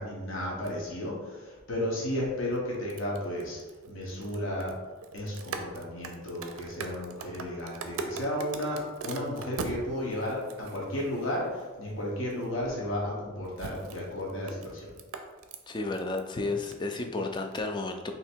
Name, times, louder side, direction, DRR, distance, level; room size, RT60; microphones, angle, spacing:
voice 1, 0.0-3.6 3.9-4.7 5.1-14.9, left 1 dB, 65° left, -4 dB, 0.9 m, -33 dB
sound 1, 0.6-0.7 2.5-11.6 12.3-12.4 13.4-16.3 16.5-16.9 17.4-17.6, right 4 dB, 75° right, 0.4 m, -41 dB
voice 2, 15.7-18.1, left 3 dB, 20° left, 5 dB, 0.3 m, -32 dB
3.2 x 2.8 x 4.4 m, 1.3 s
head